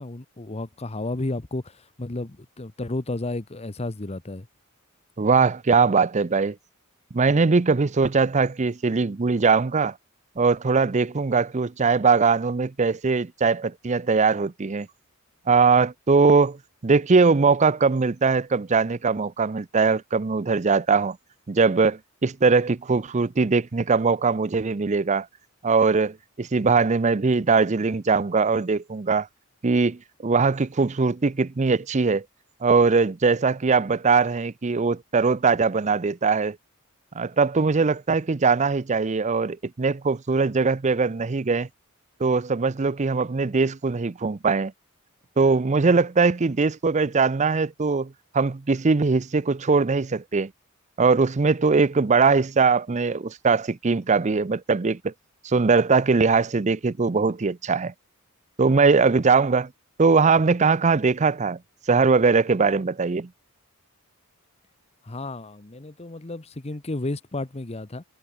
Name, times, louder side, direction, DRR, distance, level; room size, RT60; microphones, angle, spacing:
voice 1, 0.0-4.5 65.0-68.0, left 2 dB, 30° left, 0.9 m, -32 dB
voice 2, 5.2-6.6 7.1-9.9 10.4-14.9 15.5-16.6 16.8-21.2 21.5-25.3 25.6-29.3 29.6-32.2 32.6-36.6 37.1-41.7 42.2-44.7 45.4-50.5 51.0-55.1 55.4-57.9 58.6-59.7 60.0-61.6 61.9-63.3, right 4 dB, 30° right, 0.5 m, -21 dB
head